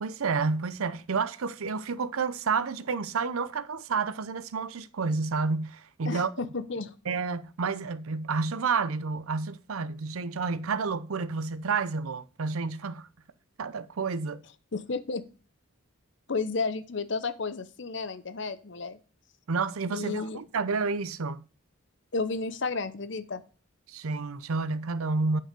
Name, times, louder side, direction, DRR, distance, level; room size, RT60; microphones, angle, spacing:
voice 1, 0.0-6.3 7.1-13.1 13.6-14.4 19.5-21.4 23.9-25.4, right 4 dB, 90° right, 0.6 m, -30 dB
voice 2, 6.1-6.9 14.7-15.2 16.3-19.0 19.9-20.4 22.1-23.4, left 4 dB, 55° left, 0.7 m, -32 dB
9.0 x 4.7 x 5.2 m
head